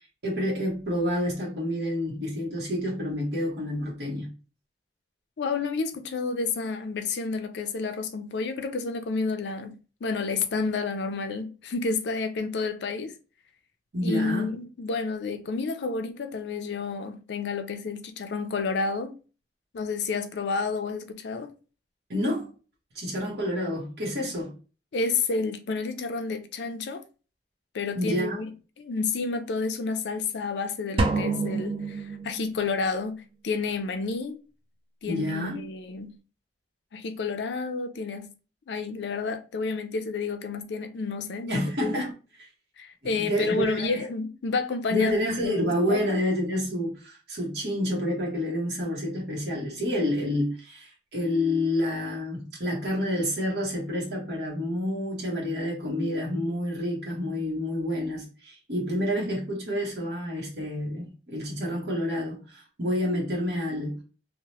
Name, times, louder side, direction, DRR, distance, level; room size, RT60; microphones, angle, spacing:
voice 1, 0.2-4.3 13.9-14.5 22.1-22.5 22.9-24.5 27.9-28.4 35.1-35.7 41.5-42.1 43.0-44.1 44.9-64.0, left 1 dB, 65° right, 1.0 m, -29 dB
voice 2, 5.4-13.1 14.0-19.2 19.7-21.5 24.9-27.0 27.7-28.5 28.8-34.4 35.0-36.2 36.9-38.3 38.7-42.1 42.8-45.1 45.4-46.0, left 4 dB, 75° left, 0.4 m, -30 dB
sound 1, 31.0-32.8, right 3 dB, 30° right, 0.3 m, -28 dB
2.8 x 2.1 x 2.9 m
head